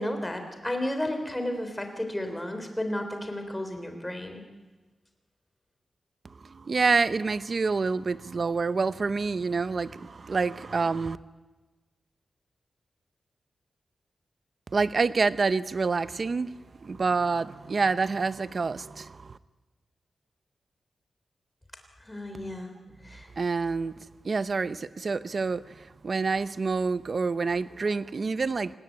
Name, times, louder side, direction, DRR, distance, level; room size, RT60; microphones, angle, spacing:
voice 1, 0.0-4.4 22.0-22.7 23.0-23.3, left 1 dB, 10° left, 6 dB, 3.4 m, -32 dB
voice 2, 6.5-11.2 14.7-16.5 16.8-19.4 23.4-23.9 24.2-28.7, right 4 dB, 40° right, 14 dB, 0.8 m, -27 dB
27.5 x 19.0 x 9.3 m, 1.2 s
wide cardioid pair, 165°, 0 cm